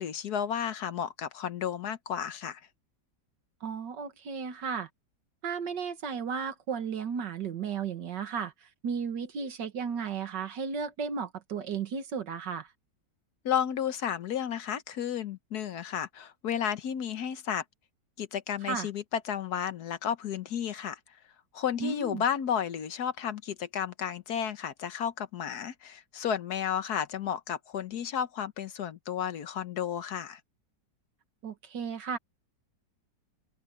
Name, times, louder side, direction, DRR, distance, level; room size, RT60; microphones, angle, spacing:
voice 1, 0.0-2.6 13.4-17.6 18.2-21.0 21.5-30.4, left 8 dB, 65° left, 1.4 m, -32 dB
voice 2, 3.6-4.9 5.4-8.5 8.8-12.7 18.6-18.9 21.8-22.2 31.4-32.2, right 6 dB, 75° right, 2.1 m, -34 dB
open air
omnidirectional pair, 1.9 m